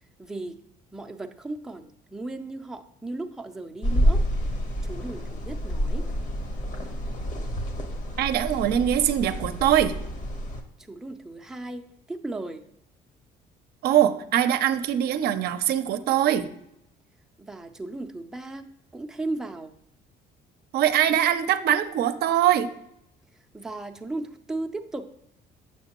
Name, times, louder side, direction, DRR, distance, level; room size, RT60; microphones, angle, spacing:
voice 1, 0.2-0.6 0.9-4.2 4.8-6.1 10.8-12.6 17.4-19.7 23.5-25.1, right 2 dB, 5° right, 4 dB, 0.4 m, -36 dB
sound 1, 3.8-10.6, equal, 50° left, 1.0 m, -28 dB
voice 2, 8.2-10.0 13.8-16.5 20.7-22.7, right 11 dB, 70° right, 10 dB, 0.5 m, -22 dB
7.2 x 5.9 x 2.9 m, 0.77 s
cardioid pair, 110°, 17 cm